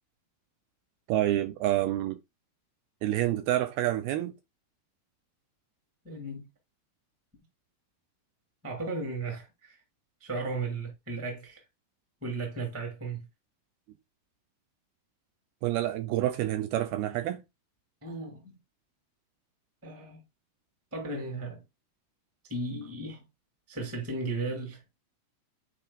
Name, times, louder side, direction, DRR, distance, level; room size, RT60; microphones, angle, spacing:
voice 1, 1.1-2.2 3.0-4.3 15.6-17.4, right 14 dB, 80° right, 2.3 m, -28 dB
voice 2, 6.0-6.5 8.6-9.8 10.2-11.6 12.2-13.2 18.0-18.5 19.8-20.2 20.9-21.6 22.5-23.2 23.7-24.8, right 3 dB, 10° right, 1.0 m, -35 dB
8.7 x 4.7 x 2.3 m
omnidirectional pair, 4.8 m